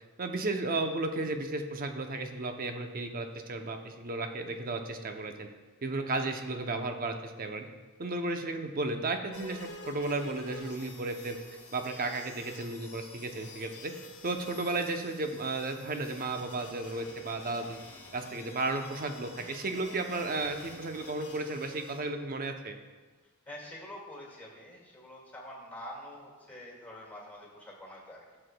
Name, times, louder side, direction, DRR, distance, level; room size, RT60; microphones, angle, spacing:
voice 1, 0.2-5.5 5.8-7.7 8.0-11.4 11.7-13.9 14.2-17.8 18.1-22.7, right 2 dB, 45° right, 5 dB, 0.6 m, -34 dB
sound 1, 9.3-22.0, left 3 dB, 80° left, 1.3 m, -49 dB
voice 2, 23.5-28.2, left 1 dB, 10° left, -3 dB, 1.9 m, -46 dB
13.0 x 6.7 x 2.2 m, 1.3 s
head